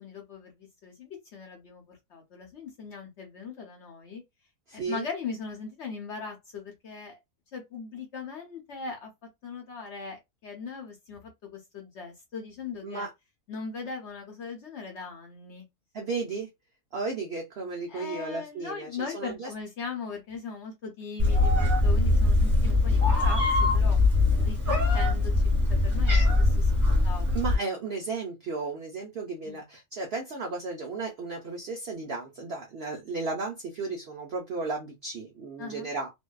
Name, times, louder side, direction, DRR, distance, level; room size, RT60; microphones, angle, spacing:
voice 1, 0.0-4.2 4.7-7.2 7.5-9.1 9.4-13.1 13.5-15.7 17.9-24.0 24.4-25.3 25.7-27.3 29.4-29.6 35.6-35.9, left 5 dB, 60° left, 0.8 m, -39 dB
voice 2, 4.7-5.0 12.8-13.1 15.9-16.5 16.9-19.5 27.3-36.1, right 4 dB, 70° right, 0.5 m, -34 dB
Meow, 21.2-27.6, left 2 dB, 15° right, 1.2 m, -22 dB
2.6 x 2.2 x 2.2 m
omnidirectional pair, 1.7 m